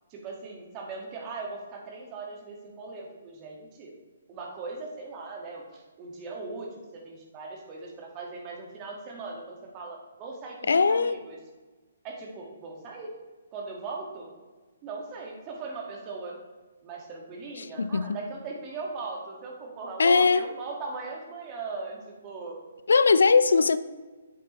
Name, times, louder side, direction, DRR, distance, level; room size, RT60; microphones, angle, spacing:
voice 1, 0.1-3.9 4.3-11.4 12.0-13.1 13.5-14.3 14.8-16.4 16.8-22.6, right 3 dB, 25° right, 1.7 m, -39 dB
voice 2, 10.7-11.2 17.6-18.2 20.0-20.4 22.9-23.8, left 4 dB, 70° left, 0.3 m, -20 dB
7.8 x 7.4 x 3.1 m
figure-of-eight pair, 135°, 0 cm